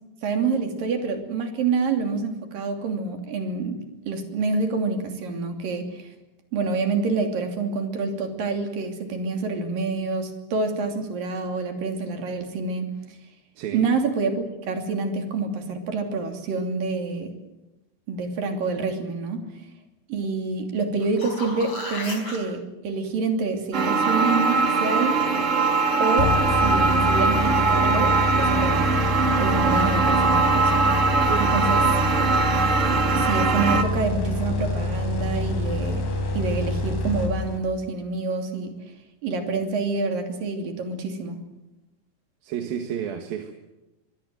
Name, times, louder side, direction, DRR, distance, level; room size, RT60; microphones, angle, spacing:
voice 1, 0.2-6.1 6.5-12.9 13.7-17.3 18.1-19.5 20.1-25.2 26.0-26.3 26.6-28.9 29.4-30.8 31.4-31.8 33.1-36.1 36.3-38.7 39.2-41.4, right 4 dB, 75° right, 5 dB, 4.6 m, -27 dB
sound 1, 20.9-22.4 27.2-27.3, left 2 dB, 35° left, 5.6 m, -34 dB
sound 2, 23.7-33.8, right 4 dB, 35° right, 1.2 m, -21 dB
sound 3, 26.2-37.8, left 2 dB, 70° left, 5.2 m, -26 dB
voice 2, 31.2-31.6 42.4-43.5, right 9 dB, 90° right, 5 dB, 3.4 m, -31 dB
24.5 x 22.0 x 7.9 m, 1.0 s
omnidirectional pair, 4.0 m